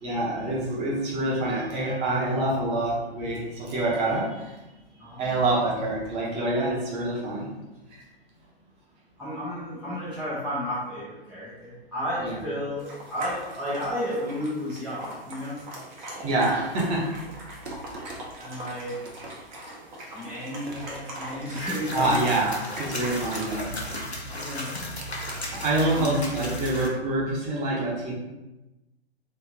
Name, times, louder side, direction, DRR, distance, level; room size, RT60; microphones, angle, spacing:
voice 1, 0.0-4.6 5.2-7.5 7.9-8.0 12.2-12.4 16.2-17.1 21.9-23.9 25.5-28.1, right 2 dB, 20° right, -4 dB, 0.9 m, -26 dB
voice 2, 9.2-15.6 18.4-19.0 20.1-22.2 24.3-24.8 25.9-26.2, equal, ahead, -13 dB, 0.4 m, -32 dB
sound 1, 12.8-23.7, right 1 dB, 45° right, 1.0 m, -42 dB
sound 2, 16.6-17.1 17.6-19.5 20.0-20.3 20.7-22.3 22.8-24.2 24.7-26.6, right 2 dB, 85° right, 0.7 m, -44 dB
sound 3, 21.6-26.9, left 1 dB, 90° left, 0.8 m, -35 dB
3.1 x 2.5 x 3.7 m, 1.0 s
figure-of-eight pair, 115°, 31 cm